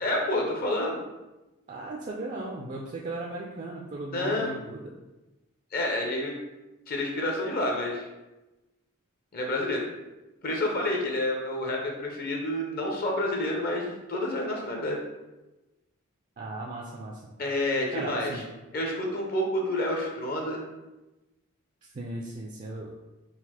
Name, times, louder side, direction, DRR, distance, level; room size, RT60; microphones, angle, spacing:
voice 1, 0.0-1.0 4.1-4.5 5.7-6.4 6.9-8.1 9.3-9.8 10.4-15.0 17.4-18.4 18.7-20.6, left 1 dB, 40° left, 0 dB, 0.6 m, -29 dB
voice 2, 1.7-4.9 16.4-17.3 17.9-18.4 21.8-22.9, right 2 dB, 35° right, -2 dB, 0.3 m, -37 dB
4.0 x 2.4 x 4.3 m, 1.1 s
head